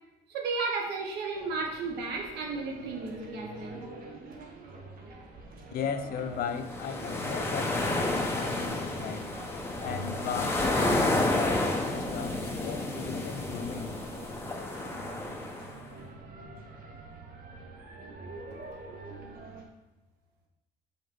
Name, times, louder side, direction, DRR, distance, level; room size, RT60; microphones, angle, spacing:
voice 1, 0.3-3.8 8.8-9.5 9.8-9.9, right 4 dB, 85° right, 2 dB, 1.3 m, -34 dB
sound 1, 1.3-19.6, right 3 dB, 60° right, 1.2 m, -46 dB
voice 2, 5.7-9.3 9.8-14.0, left 7 dB, 60° left, 9 dB, 0.6 m, -37 dB
sound 2, 6.5-15.8, left 2 dB, 15° left, 0.9 m, -30 dB
5.7 x 4.2 x 5.3 m, 1.0 s
cardioid pair, 110°, 17 cm